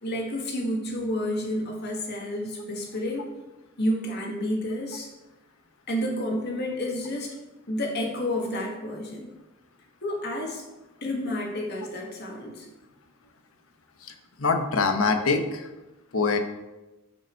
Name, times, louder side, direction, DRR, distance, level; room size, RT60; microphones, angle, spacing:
voice 1, 0.0-3.3 3.8-5.1 5.9-7.3 7.7-9.3 10.0-10.6 11.0-12.7, left 1 dB, 50° left, 0 dB, 2.1 m, -30 dB
voice 2, 14.4-15.7 16.1-16.4, left 4 dB, 70° left, 6 dB, 1.1 m, -23 dB
12.5 x 5.5 x 4.7 m, 1.1 s
head